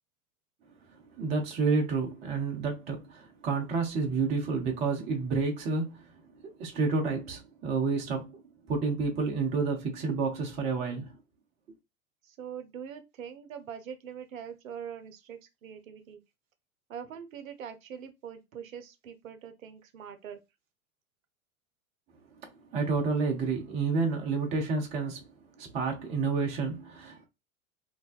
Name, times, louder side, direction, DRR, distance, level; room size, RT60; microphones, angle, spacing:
voice 1, 1.2-6.0 6.6-8.3 8.7-11.1 22.7-25.2 25.6-27.3, right 4 dB, 15° right, 0.4 m, -29 dB
voice 2, 12.2-16.2 16.9-20.4, right 8 dB, 65° right, 0.6 m, -43 dB
2.6 x 2.1 x 2.3 m
figure-of-eight pair, 85°, 43 cm